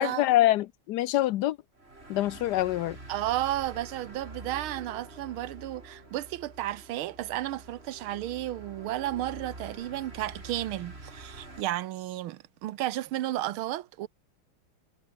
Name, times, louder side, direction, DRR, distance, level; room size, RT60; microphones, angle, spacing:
voice 1, 0.0-1.6 2.1-3.0, left 14 dB, 70° left, 1.0 m, -25 dB
sound 1, 1.8-11.6, right 2 dB, 30° right, 4.6 m, -46 dB
voice 2, 3.1-14.1, right 14 dB, 90° right, 1.7 m, -33 dB
omnidirectional pair, 2.2 m